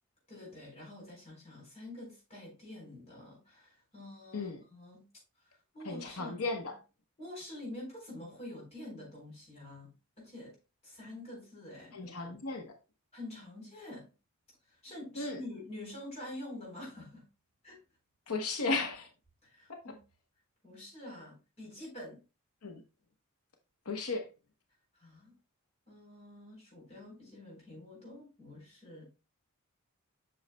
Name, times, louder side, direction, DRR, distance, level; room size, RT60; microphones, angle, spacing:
voice 1, 0.3-5.1 5.4-6.7 7.2-10.6 10.8-12.6 13.1-14.1 14.7-17.3 17.6-17.8 19.4-20.0 20.6-22.2 24.9-25.3 25.9-29.0, left 1 dB, 30° left, 3.8 m, -47 dB
voice 2, 5.8-6.7 11.9-12.7 15.2-15.4 18.3-19.1 22.6-22.8 23.9-24.2, left 3 dB, 90° left, 0.9 m, -35 dB
7.7 x 6.3 x 2.2 m
head